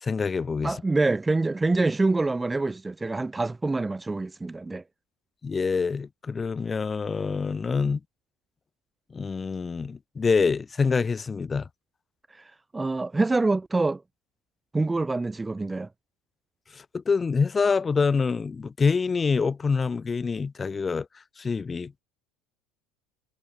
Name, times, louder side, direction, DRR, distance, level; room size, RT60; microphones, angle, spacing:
voice 1, 0.0-0.7 5.4-8.0 9.1-11.7 16.7-21.1 21.4-22.0, left 5 dB, 20° left, 0.7 m, -26 dB
voice 2, 0.6-4.8 12.3-14.0 14.7-15.9, right 3 dB, 10° right, 0.3 m, -26 dB
supercardioid pair, 115°, 0 cm